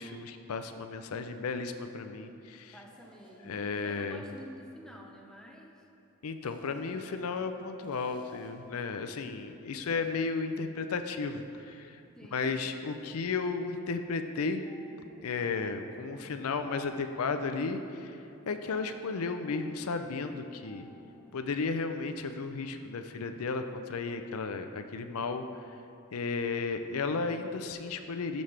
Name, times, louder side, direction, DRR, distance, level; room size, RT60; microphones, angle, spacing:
voice 1, 0.0-2.8 3.4-4.2 6.2-12.0 12.3-14.6 15.2-18.2 18.5-20.9 21.3-25.4 26.1-28.4, left 4 dB, 75° left, 8 dB, 0.5 m, -34 dB
voice 2, 2.7-5.8 12.2-12.6, equal, 5° left, 0 dB, 0.7 m, -49 dB
sound 1, 2.9-4.0 4.4-4.5 6.3-7.4 7.8-8.7, right 1 dB, 20° right, 0.9 m, -55 dB
sound 2, 14.4-21.3, left 2 dB, 25° left, 0.9 m, -56 dB
13.0 x 5.3 x 3.3 m, 2.8 s
head